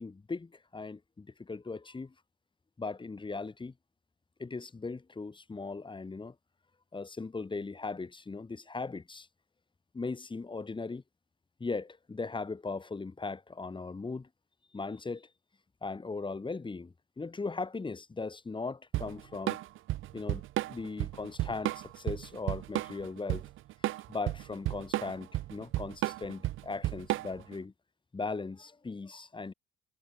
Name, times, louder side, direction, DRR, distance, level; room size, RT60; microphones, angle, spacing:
voice 1, 0.0-2.1 2.8-3.7 4.4-6.3 6.9-9.3 9.9-11.0 11.6-14.3 14.7-15.3 15.8-19.6 20.1-23.4 24.1-27.7 28.1-29.5, left 3 dB, 25° left, 2.8 m, -38 dB
Drum kit / Drum, 18.9-27.5, right 16 dB, 85° right, 1.0 m, -33 dB
cardioid pair, 90°, 20 cm